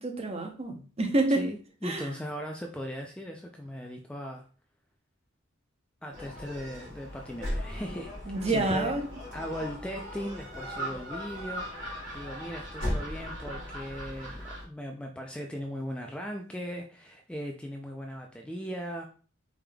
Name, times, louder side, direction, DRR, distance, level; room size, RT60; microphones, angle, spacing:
voice 1, 0.0-1.5 1.8-2.1 8.3-9.1, right 2 dB, 30° right, 0.6 m, -28 dB
voice 2, 1.3-4.5 6.0-8.1 8.5-8.9 9.3-19.1, equal, 5° left, 0.3 m, -38 dB
Gull seagull, 6.1-14.7, equal, 65° right, 2.0 m, -37 dB
4.8 x 3.4 x 2.2 m
head